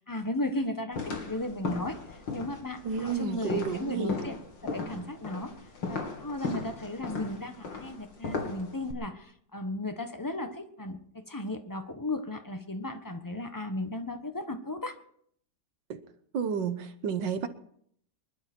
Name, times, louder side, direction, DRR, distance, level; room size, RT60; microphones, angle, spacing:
voice 1, 0.0-4.4 4.6-5.5 5.9-15.0, left 1 dB, 15° left, 7 dB, 1.0 m, -35 dB
sound 1, 0.9-8.9, left 4 dB, 85° left, 3.0 m, -37 dB
voice 2, 2.8-4.2 15.9-16.0 16.3-17.5, right 6 dB, 80° right, 11 dB, 1.8 m, -31 dB
24.5 x 12.0 x 4.5 m, 0.66 s
omnidirectional pair, 2.0 m